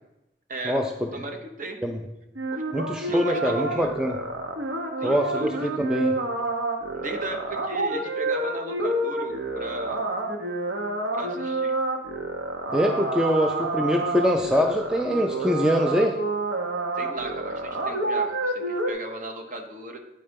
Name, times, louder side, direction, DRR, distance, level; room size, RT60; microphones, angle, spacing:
voice 1, 0.5-0.8 1.1-1.8 2.5-2.6 3.1-3.9 5.0-5.8 7.0-10.0 11.1-11.7 17.0-20.0, right 2 dB, 40° right, 4 dB, 1.0 m, -36 dB
sound 1, 2.4-18.9, right 2 dB, 70° right, 1.1 m, -29 dB
voice 2, 2.7-4.2 5.0-6.2 12.7-16.2, equal, 5° right, 3 dB, 0.4 m, -23 dB
9.3 x 4.2 x 5.2 m, 0.93 s
head